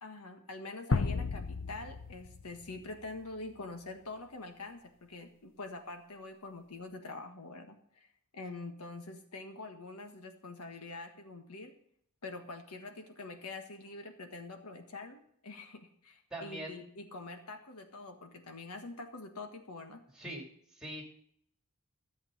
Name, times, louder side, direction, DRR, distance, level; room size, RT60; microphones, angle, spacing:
voice 1, 0.0-11.7 12.2-20.0, left 3 dB, 90° left, 5 dB, 1.6 m, -45 dB
sound 1, 0.9-3.3, left 4 dB, 55° left, 0.6 m, -34 dB
voice 2, 16.3-16.8 20.1-20.4 20.7-21.2, right 1 dB, 5° right, -1 dB, 2.8 m, -42 dB
14.0 x 7.5 x 5.3 m, 0.65 s
head